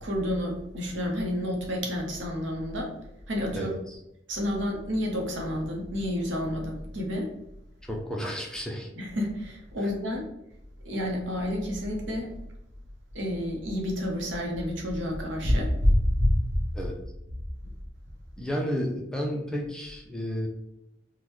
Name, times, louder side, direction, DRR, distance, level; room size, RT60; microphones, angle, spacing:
voice 1, 0.0-2.9 3.3-3.8 4.3-7.3 9.0-10.2 10.8-12.3 13.1-16.7 17.6-17.7, left 1 dB, 70° right, 0 dB, 0.9 m, -28 dB
voice 2, 3.5-4.0 7.9-8.9 16.7-16.9 18.4-20.5, equal, 5° left, -1 dB, 0.4 m, -32 dB
3.7 x 2.1 x 3.0 m, 0.83 s
head